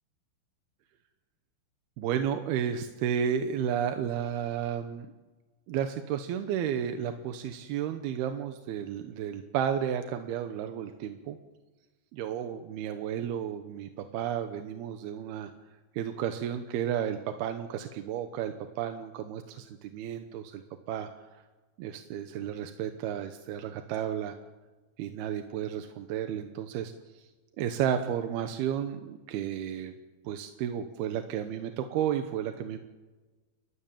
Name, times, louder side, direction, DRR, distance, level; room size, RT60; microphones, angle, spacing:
voice 1, 2.0-5.1 5.7-11.4 12.1-15.5 15.9-20.6 20.9-21.1 21.8-24.3 25.0-27.2 27.6-29.9 30.2-32.8, right 9 dB, 75° right, 7 dB, 2.6 m, -32 dB
30.0 x 14.5 x 7.4 m, 1.2 s
omnidirectional pair, 5.3 m